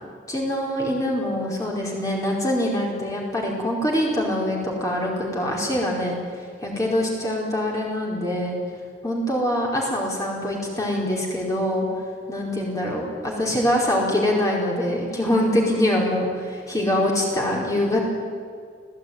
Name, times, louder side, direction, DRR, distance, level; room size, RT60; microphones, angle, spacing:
voice 1, 0.3-6.2 6.6-8.6 9.0-11.9 12.3-18.0, left 1 dB, 20° left, -2 dB, 4.6 m, -24 dB
29.0 x 17.0 x 9.5 m, 2.1 s
head